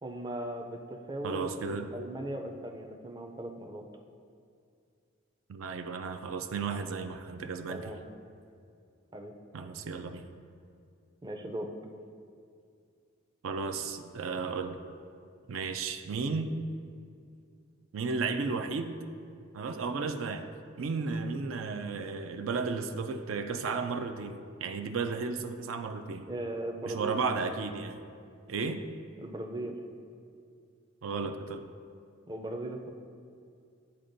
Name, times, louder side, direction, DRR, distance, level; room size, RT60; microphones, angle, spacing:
voice 1, 0.0-3.8 7.7-8.0 9.1-9.3 11.2-11.7 26.3-27.2 29.2-29.8 32.3-32.9, right 1 dB, 20° right, 3 dB, 0.4 m, -38 dB
voice 2, 1.2-1.9 5.5-7.8 9.5-10.2 13.4-14.8 15.5-16.5 17.9-18.9 19.5-20.5 20.8-26.3 26.9-28.0 28.5-28.8 31.0-31.6, right 4 dB, 80° right, 7 dB, 0.4 m, -34 dB
11.5 x 4.3 x 2.6 m, 2.4 s
head